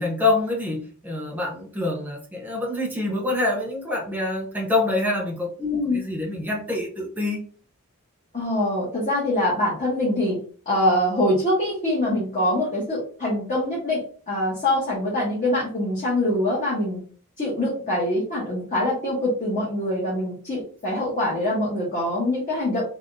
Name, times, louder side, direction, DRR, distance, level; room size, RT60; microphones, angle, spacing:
voice 1, 0.0-7.4, left 2 dB, 10° right, -2 dB, 0.8 m, -26 dB
voice 2, 5.6-6.0 8.3-10.4 10.7-14.0 14.3-17.0 17.4-22.8, left 1 dB, 35° left, -7 dB, 1.0 m, -24 dB
3.5 x 2.2 x 2.6 m, 0.42 s
head